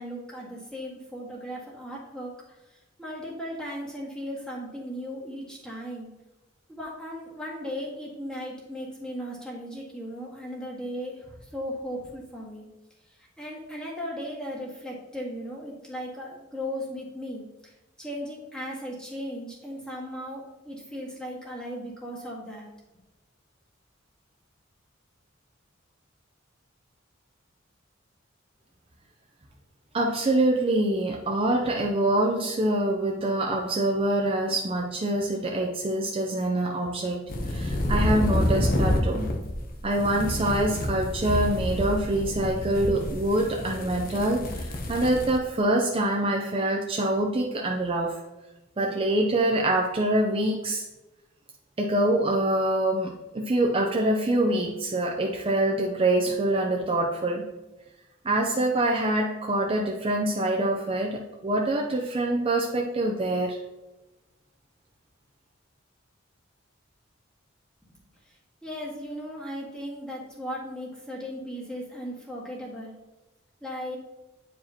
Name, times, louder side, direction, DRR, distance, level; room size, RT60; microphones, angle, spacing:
voice 1, 0.0-2.3 2.7-6.1 6.7-12.7 13.1-17.7 18.0-22.7 67.9-68.0 68.3-68.4 68.6-72.9 73.6-74.0, equal, 5° left, -4 dB, 1.6 m, -37 dB
voice 2, 29.9-39.3 39.8-48.2 48.8-50.8 51.8-57.4 58.2-63.6, right 1 dB, 30° right, 0 dB, 0.5 m, -25 dB
sound 1, 37.3-45.4, left 1 dB, 45° left, 0.8 m, -28 dB
9.2 x 4.8 x 2.8 m, 1.1 s
head